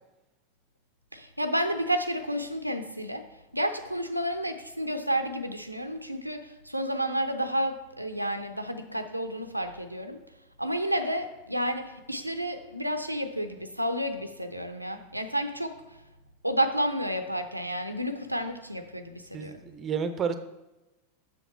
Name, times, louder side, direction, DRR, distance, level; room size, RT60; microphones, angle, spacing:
voice 1, 1.1-3.3 3.5-10.2 10.6-16.0 16.4-19.6, equal, 90° right, 7 dB, 0.5 m, -31 dB
voice 2, 19.3-20.3, right 6 dB, 25° right, 10 dB, 0.6 m, -30 dB
7.1 x 6.5 x 4.3 m, 1.0 s
figure-of-eight pair, 90°, 0 cm